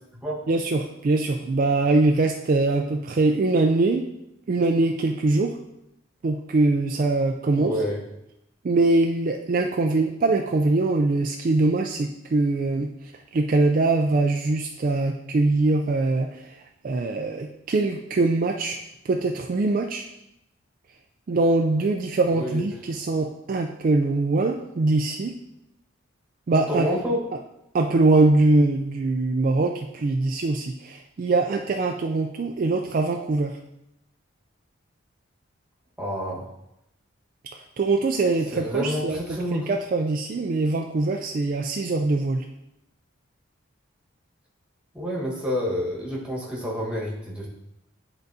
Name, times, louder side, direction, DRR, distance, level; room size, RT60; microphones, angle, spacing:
voice 1, 0.5-4.1 4.5-5.5 6.2-7.7 8.6-12.9 13.3-16.5 16.8-18.8 19.0-20.0 21.3-25.3 26.5-26.9 27.7-33.5 37.8-42.4, right 2 dB, 40° right, 3 dB, 0.3 m, -22 dB
voice 2, 7.5-8.0 22.3-22.7 26.7-27.2 36.0-36.5 38.5-39.7 44.9-47.5, equal, 5° right, -4 dB, 1.3 m, -28 dB
10.5 x 3.9 x 2.7 m, 0.85 s
head